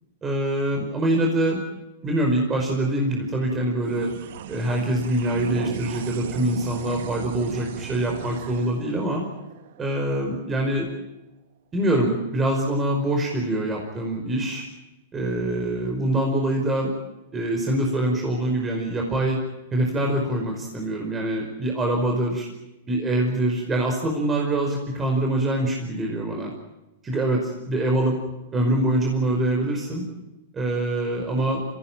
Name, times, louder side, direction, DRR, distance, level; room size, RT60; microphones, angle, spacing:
voice 1, 0.2-1.6 2.0-4.1 4.5-9.2 9.8-10.9 11.7-14.6 15.1-16.9 17.3-19.4 19.7-22.5 22.9-26.5 27.0-27.4 27.7-28.2 28.5-30.0 30.5-31.7, right 1 dB, 20° right, 1 dB, 5.3 m, -24 dB
sound 1, 3.8-10.5, right 10 dB, 60° right, 1.3 m, -37 dB
28.0 x 16.5 x 9.0 m, 0.99 s
hypercardioid pair, 105°, 0 cm